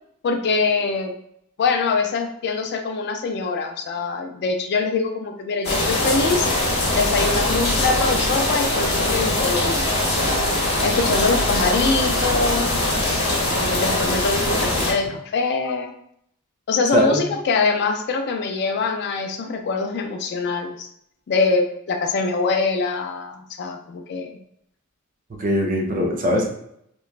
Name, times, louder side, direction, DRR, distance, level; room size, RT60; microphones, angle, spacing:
voice 1, 0.2-1.1 1.6-6.5 6.9-9.8 10.1-10.4 10.8-12.8 13.6-15.9 16.7-20.9 21.3-24.4, left 4 dB, 50° left, 5 dB, 0.3 m, -23 dB
sound 1, 5.6-14.9, left 1 dB, 65° left, 0.9 m, -22 dB
voice 2, 16.9-17.2 25.4-26.5, equal, 40° right, 1 dB, 0.5 m, -20 dB
2.9 x 2.2 x 2.4 m, 0.71 s
head